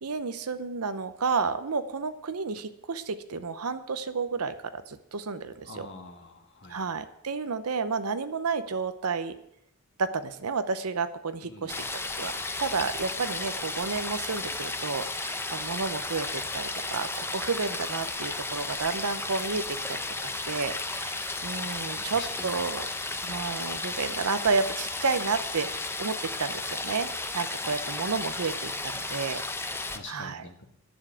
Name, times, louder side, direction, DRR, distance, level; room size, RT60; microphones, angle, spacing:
voice 1, 0.0-5.9 6.7-9.4 10.0-11.8 12.1-22.9 23.2-27.1 27.3-29.8 30.1-30.4, right 4 dB, 75° right, 11 dB, 0.8 m, -31 dB
voice 2, 5.7-6.9 11.4-11.8 22.0-22.6 29.9-30.6, left 3 dB, 55° left, 3 dB, 1.8 m, -45 dB
sound 1, 11.7-30.0, left 2 dB, 10° left, 0.7 m, -34 dB
11.0 x 7.2 x 9.0 m, 0.76 s
head